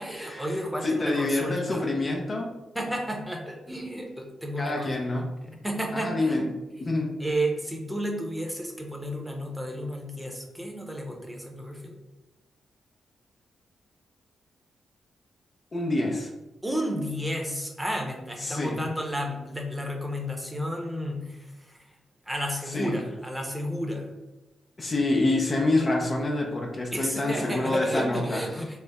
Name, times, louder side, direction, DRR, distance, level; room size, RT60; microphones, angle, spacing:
voice 1, 0.0-1.8 2.7-5.0 5.5-6.9 7.2-11.9 16.6-22.0 22.3-24.1 26.9-28.8, equal, 10° right, 1 dB, 0.8 m, -32 dB
voice 2, 0.8-2.6 4.6-5.3 5.9-6.5 6.8-7.2 15.7-16.3 18.4-18.8 22.7-23.0 24.8-28.4, left 2 dB, 45° left, 0 dB, 0.6 m, -27 dB
3.1 x 2.0 x 3.5 m, 1.0 s
hypercardioid pair, 40°, 0 cm